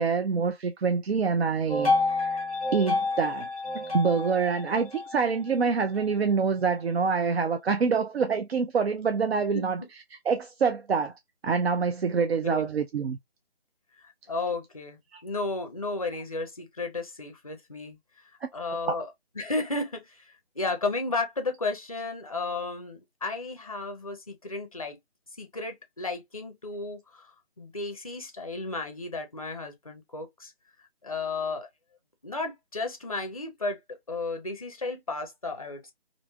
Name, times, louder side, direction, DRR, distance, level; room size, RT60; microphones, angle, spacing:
voice 1, 0.0-2.4 2.7-3.5 3.7-9.8 10.3-11.1 11.4-13.2 15.1-15.2 18.9-19.0, right 5 dB, 75° right, 0.5 m, -26 dB
sound 1, 1.7-6.1, left 3 dB, 10° left, 0.8 m, -29 dB
voice 2, 9.5-9.9 12.2-12.7 14.0-19.1 19.4-25.0 25.4-30.5 31.0-31.7 32.2-35.9, left 3 dB, 35° left, 0.5 m, -34 dB
3.0 x 2.5 x 2.2 m
figure-of-eight pair, 170°, 32 cm